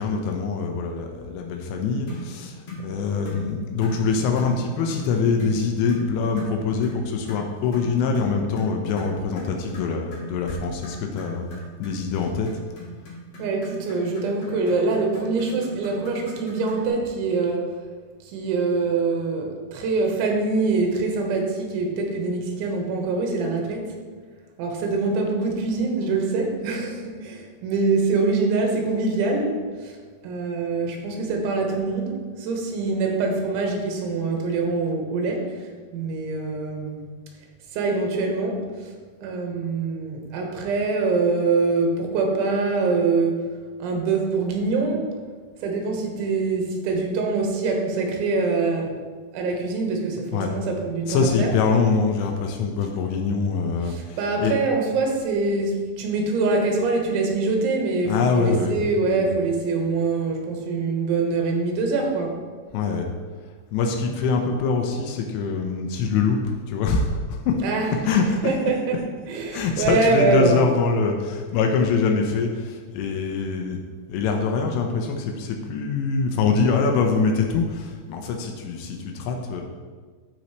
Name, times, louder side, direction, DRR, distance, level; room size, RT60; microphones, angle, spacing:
voice 1, 0.0-11.5 11.8-12.5 50.3-50.5 51.1-54.6 58.1-58.8 59.0-59.3 62.7-63.1 63.7-67.6 68.0-69.0 69.5-73.8 74.1-79.6, left 4 dB, 80° left, 2 dB, 2.9 m, -24 dB
sound 1, 2.1-2.3 2.7-2.9 3.2-3.5 3.8-4.0 4.4-4.6 4.9-5.1 5.4-5.6 5.9-6.1 6.4-6.6 6.8-7.0 7.3-16.9, left 1 dB, 60° left, 1.6 m, -39 dB
voice 2, 13.4-17.8 18.2-24.0 24.6-30.0 30.2-37.1 37.7-38.9 39.2-43.4 43.8-45.1 45.6-49.0 49.3-51.5 53.8-62.4 67.6-67.9 68.4-69.0 69.3-70.6, right 3 dB, 85° right, 2 dB, 3.5 m, -24 dB
13.0 x 5.5 x 3.1 m, 1.5 s
omnidirectional pair, 5.4 m